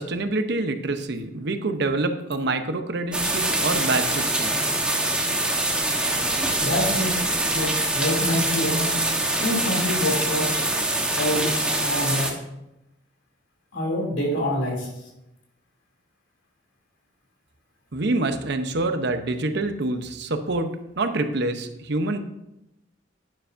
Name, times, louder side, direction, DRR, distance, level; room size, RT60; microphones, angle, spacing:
voice 1, 0.0-4.6 17.9-22.2, right 2 dB, 60° right, 7 dB, 0.8 m, -26 dB
sound 1, 3.1-12.3, right 2 dB, 5° right, 1.2 m, -24 dB
voice 2, 6.4-9.0 9.4-10.7 11.1-12.4 13.7-14.9, left 1 dB, 85° left, -1 dB, 2.9 m, -26 dB
11.0 x 9.7 x 2.6 m, 0.88 s
head